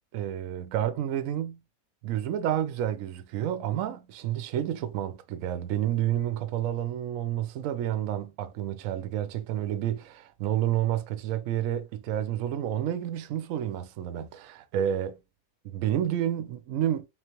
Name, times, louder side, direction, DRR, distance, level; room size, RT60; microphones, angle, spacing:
voice 1, 0.1-1.6 2.0-15.2 15.6-17.1, right 11 dB, 65° right, 0.9 m, -30 dB
3.8 x 3.2 x 2.9 m
omnidirectional pair, 1.8 m